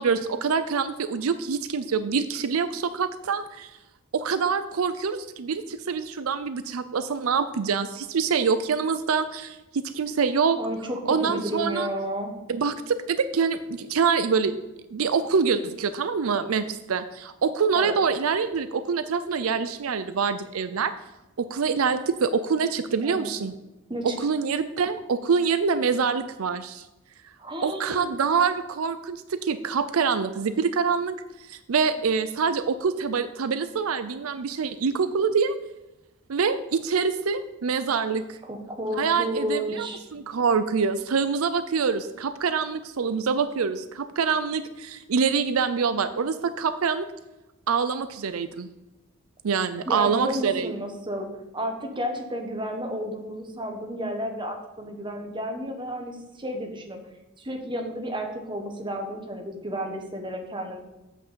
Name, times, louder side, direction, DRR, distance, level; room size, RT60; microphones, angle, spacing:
voice 1, 0.0-3.7 4.1-10.6 11.1-11.9 12.5-14.6 14.9-20.9 21.4-23.5 24.0-26.9 27.6-31.1 31.5-35.5 36.3-38.4 39.0-39.9 40.1-47.1 47.7-48.7 49.4-50.7, right 5 dB, 80° right, 11 dB, 0.5 m, -25 dB
voice 2, 10.6-12.3 17.7-18.0 23.0-23.3 23.9-24.2 27.4-28.2 38.4-40.0 49.9-57.0 57.4-60.8, equal, 25° right, 3 dB, 1.4 m, -32 dB
8.0 x 6.0 x 6.8 m, 1.0 s
head